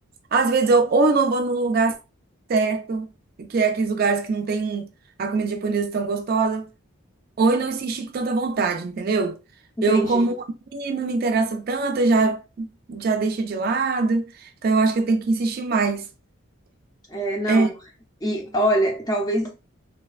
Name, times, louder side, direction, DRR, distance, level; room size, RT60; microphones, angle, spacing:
voice 1, 0.3-2.0 2.5-3.1 3.4-4.9 5.2-6.7 7.4-9.4 9.8-10.4 10.7-16.1 17.5-17.7, right 3 dB, 45° right, 0.3 m, -22 dB
voice 2, 9.8-10.3 17.1-17.7 18.2-19.6, right 1 dB, 15° left, 0.5 m, -24 dB
3.1 x 2.1 x 2.3 m
head